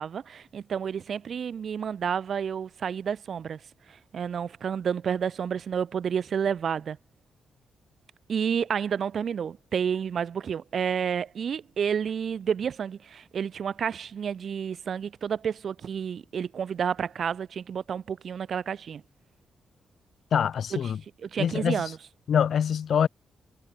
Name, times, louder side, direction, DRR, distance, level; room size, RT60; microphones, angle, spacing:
voice 1, 0.0-3.6 3.9-7.0 8.3-19.0 21.2-22.0, right 7 dB, 55° right, 0.3 m, -30 dB
voice 2, 20.3-21.0 21.4-21.9 22.3-23.1, left 8 dB, 65° left, 0.6 m, -25 dB
cardioid pair, 120°, 0 cm